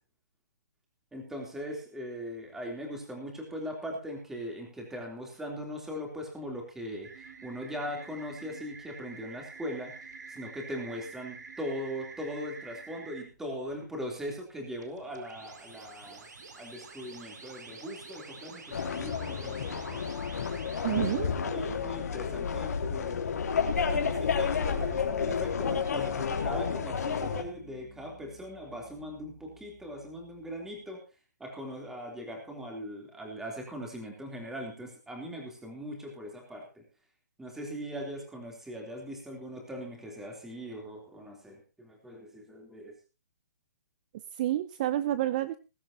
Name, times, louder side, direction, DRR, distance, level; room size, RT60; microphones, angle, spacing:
voice 1, 1.1-7.1 7.4-9.9 10.3-16.3 16.6-20.1 20.9-23.3 23.9-31.0 31.4-36.8 37.4-42.9, equal, 5° right, 1 dB, 3.3 m, -40 dB
sound 1, 7.0-13.2 14.8-21.2, right 4 dB, 80° right, 4.5 m, -48 dB
sound 2, 18.7-27.4, left 6 dB, 60° left, 3.0 m, -31 dB
voice 2, 20.8-21.3 44.3-45.6, right 13 dB, 30° right, 15 dB, 0.6 m, -29 dB
sound 3, 25.9-30.7, left 7 dB, 30° left, 3.2 m, -50 dB
21.0 x 12.0 x 2.9 m, 0.31 s
hypercardioid pair, 165°, 10 cm